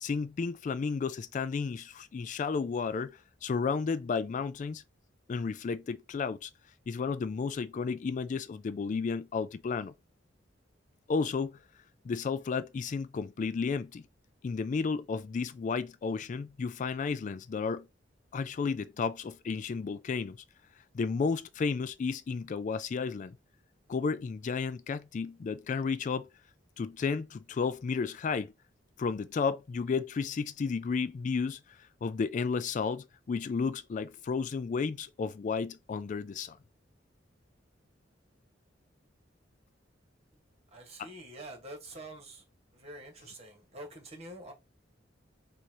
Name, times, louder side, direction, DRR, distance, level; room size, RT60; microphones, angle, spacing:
voice 1, 0.0-4.8 5.3-6.5 6.9-9.9 11.1-11.6 12.0-14.1 14.4-17.9 18.3-20.4 20.9-23.4 23.9-26.3 26.8-28.5 29.0-36.6, left 5 dB, 40° left, 0.3 m, -32 dB
voice 2, 40.7-42.5 42.7-44.5, right 1 dB, 35° right, 1.8 m, -46 dB
4.1 x 2.7 x 4.7 m
head